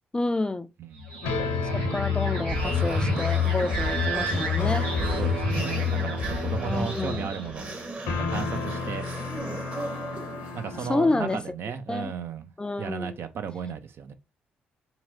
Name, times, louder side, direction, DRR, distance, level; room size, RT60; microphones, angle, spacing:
voice 1, 0.1-0.7 1.7-4.9 6.6-7.2 10.8-11.4 11.9-12.1 12.6-13.2, left 2 dB, 20° left, 0.4 m, -29 dB
voice 2, 0.8-1.2 5.2-7.7 8.0-9.1 10.5-12.5 12.8-14.1, right 7 dB, 55° right, 0.6 m, -35 dB
sound 1, 1.0-7.6, left 4 dB, 85° right, 1.1 m, -28 dB
sound 2, 1.2-11.4, left 3 dB, 75° left, 0.7 m, -34 dB
sound 3, 2.5-11.0, right 2 dB, 30° right, 1.3 m, -38 dB
3.8 x 2.9 x 2.6 m
hypercardioid pair, 45°, 5 cm